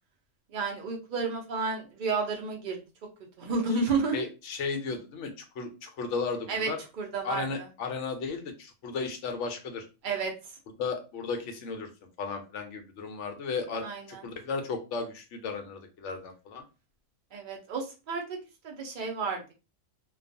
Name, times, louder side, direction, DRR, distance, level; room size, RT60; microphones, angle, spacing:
voice 1, 0.5-2.8 3.4-4.2 6.5-7.7 10.0-10.3 13.8-14.2 17.3-18.2 18.6-19.5, right 4 dB, 50° right, 1 dB, 0.6 m, -31 dB
voice 2, 4.1-6.8 7.2-9.9 10.8-11.9 12.2-16.6, left 4 dB, 70° left, 5 dB, 0.8 m, -35 dB
2.3 x 2.3 x 2.5 m, 0.31 s
omnidirectional pair, 1.4 m